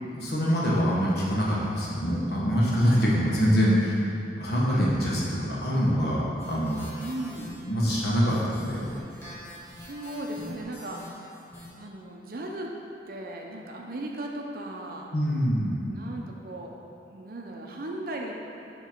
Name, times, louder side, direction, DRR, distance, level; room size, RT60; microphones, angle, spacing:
voice 1, 0.0-4.0 4.4-6.8 7.7-8.9 15.1-15.8, equal, 60° left, -5 dB, 1.1 m, -24 dB
sound 1, 6.4-11.7, left 1 dB, 15° left, 0.9 m, -45 dB
voice 2, 7.0-7.5 9.6-11.3 11.7-12.7 13.1-15.1 15.9-16.7 17.1-18.4, right 1 dB, 55° right, 0 dB, 0.6 m, -37 dB
7.1 x 3.0 x 4.4 m, 2.8 s
head